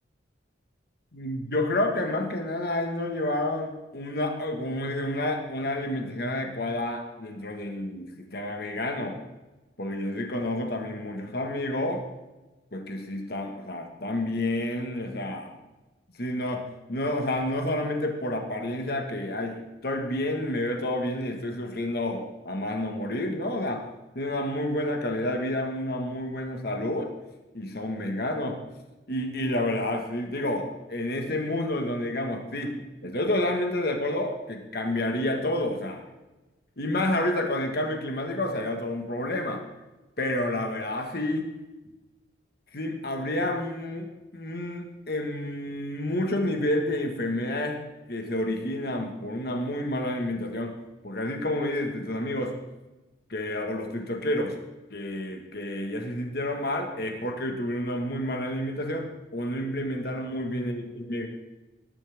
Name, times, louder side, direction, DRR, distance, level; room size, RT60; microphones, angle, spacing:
voice 1, 1.1-9.2 9.8-12.0 12.7-15.5 16.2-23.8 24.1-27.1 27.5-28.6 29.1-36.0 36.8-39.6 40.2-41.5 42.7-47.8 48.1-52.6 53.3-54.6 54.9-61.3, left 1 dB, 55° left, 3 dB, 1.6 m, -29 dB
19.5 x 11.5 x 3.6 m, 1.1 s
head